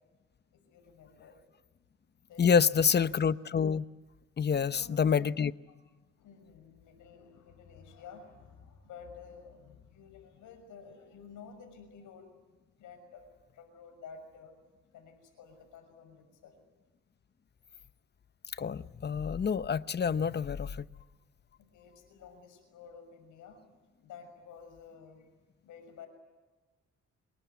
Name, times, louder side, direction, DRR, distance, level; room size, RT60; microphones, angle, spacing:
voice 1, 0.5-1.4 2.3-3.0 4.4-5.4 5.7-5.8 6.1-12.3 12.7-13.2 13.5-14.5 14.9-16.6 21.6-23.6 24.0-25.3 25.6-26.1, left 6 dB, 80° left, 6.1 m, -52 dB
voice 2, 2.4-3.8 4.4-5.5 18.6-20.8, left 6 dB, 35° left, 0.9 m, -27 dB
26.5 x 22.0 x 9.5 m
cardioid pair, 90°, 30 cm